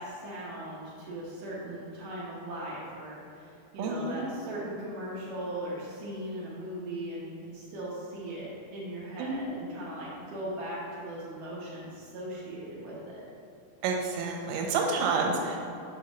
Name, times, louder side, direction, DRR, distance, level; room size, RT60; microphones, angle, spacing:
voice 1, 0.0-13.2, right 1 dB, 70° right, -7 dB, 2.1 m, -39 dB
voice 2, 3.8-4.3 9.2-9.6 13.8-15.6, right 4 dB, 90° right, 1 dB, 2.9 m, -29 dB
7.6 x 5.8 x 3.0 m, 2.7 s
omnidirectional pair, 5.1 m